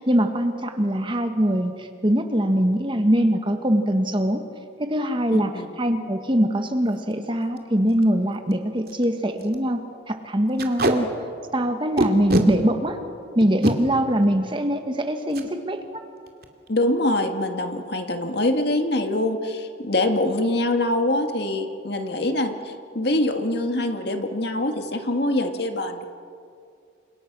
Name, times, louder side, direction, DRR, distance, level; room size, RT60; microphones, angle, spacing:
voice 1, 0.0-4.4 4.8-5.5 5.8-11.1 11.5-13.0 13.3-15.8, equal, 25° right, 6 dB, 1.6 m, -22 dB
voice 2, 5.3-5.7 16.7-26.1, left 1 dB, 55° left, 5 dB, 2.1 m, -24 dB
Packing tape duct tape, 6.9-7.1 7.6-7.7 7.9-8.0 8.5-8.6 8.9-9.0 9.4-9.6 10.6-10.9 12.0-12.5 13.4-13.7 15.3-15.5 15.8-16.0 16.3-16.7, right 1 dB, 50° right, 2.4 m, -23 dB
30.0 x 26.5 x 6.2 m, 2.4 s
head